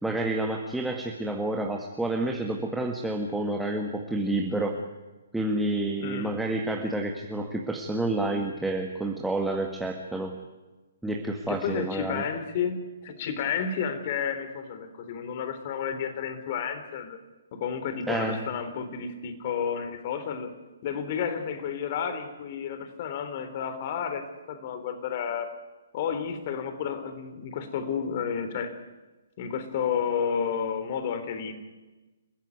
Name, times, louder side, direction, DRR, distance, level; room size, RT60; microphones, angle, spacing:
voice 1, 0.0-4.9 5.3-10.4 11.0-12.2 18.1-18.5, right 2 dB, 5° right, 1 dB, 1.8 m, -29 dB
voice 2, 6.0-6.3 11.5-17.2 17.5-20.5 20.8-25.5 25.9-28.7 29.4-31.5, left 7 dB, 40° left, 10 dB, 3.4 m, -31 dB
29.0 x 15.5 x 9.7 m, 1.2 s
figure-of-eight pair, 130°, 0 cm